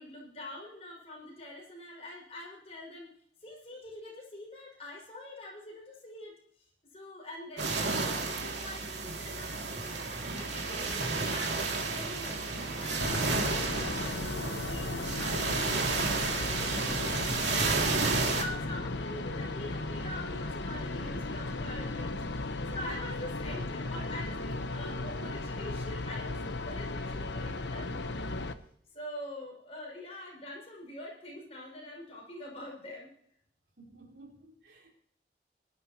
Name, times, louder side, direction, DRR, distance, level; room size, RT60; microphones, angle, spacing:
voice 1, 0.0-3.1 3.4-6.4 6.9-12.4 12.8-28.3 28.9-33.1, left 1 dB, 35° left, -2 dB, 5.8 m, -45 dB
sound 1, 7.6-18.4, right 3 dB, 80° right, 2.5 m, -32 dB
sound 2, 10.8-19.0, equal, 5° left, 6.4 m, -49 dB
sound 3, 13.0-28.5, left 2 dB, 80° left, 1.0 m, -36 dB
voice 2, 33.8-34.9, right 2 dB, 65° right, 0 dB, 4.1 m, -54 dB
22.5 x 12.0 x 3.0 m, 0.66 s
head